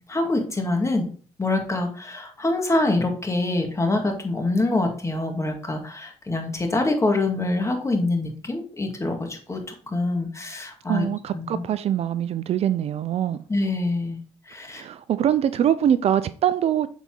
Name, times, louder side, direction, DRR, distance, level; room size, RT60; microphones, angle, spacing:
voice 1, 0.1-1.0 1.4-11.1 11.3-11.7 13.5-14.2 14.5-14.8, left 2 dB, 25° left, 1.9 m, -25 dB
voice 2, 10.9-13.4 14.7-16.9, right 10 dB, 55° right, 0.4 m, -23 dB
7.1 x 4.1 x 3.7 m
supercardioid pair, 65°, 13 cm